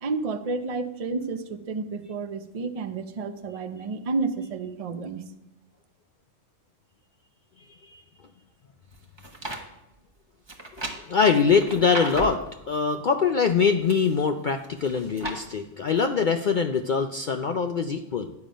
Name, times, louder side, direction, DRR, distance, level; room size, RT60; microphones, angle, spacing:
voice 1, 0.0-5.2, right 4 dB, 40° right, 8 dB, 0.5 m, -30 dB
sound 1, 8.9-9.6 10.5-12.5 13.4-14.1 14.6-15.4 15.9-16.0, right 2 dB, 20° right, 1.0 m, -35 dB
voice 2, 11.1-18.3, left 5 dB, 75° left, 6 dB, 0.4 m, -23 dB
10.5 x 7.2 x 5.1 m, 0.88 s
omnidirectional pair, 1.4 m